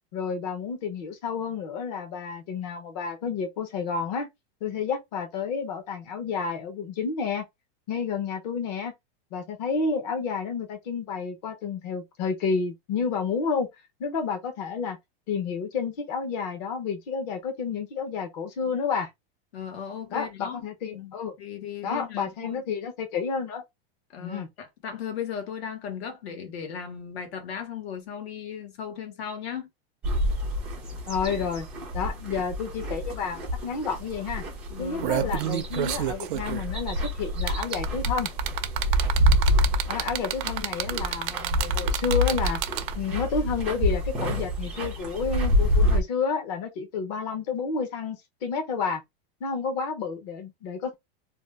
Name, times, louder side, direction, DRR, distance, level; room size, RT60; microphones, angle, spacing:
voice 1, 0.1-4.3 4.6-7.4 7.9-8.9 9.3-13.7 14.0-15.0 15.3-19.1 20.1-21.3 21.8-23.6 24.2-24.5 31.1-31.7 31.9-34.4 34.8-38.3 39.9-42.6 43.0-49.0 49.4-50.9, left 5 dB, 45° left, 0.8 m, -30 dB
voice 2, 19.5-20.7 20.9-22.6 24.1-29.7 34.7-35.3, left 8 dB, 85° left, 1.3 m, -37 dB
sound 1, 30.0-46.0, equal, 5° right, 0.3 m, -27 dB
sound 2, 33.5-33.6 33.9-34.1 34.7-43.1 44.3-44.4, right 11 dB, 55° right, 0.5 m, -30 dB
2.6 x 2.2 x 3.3 m
supercardioid pair, 175°, 31 cm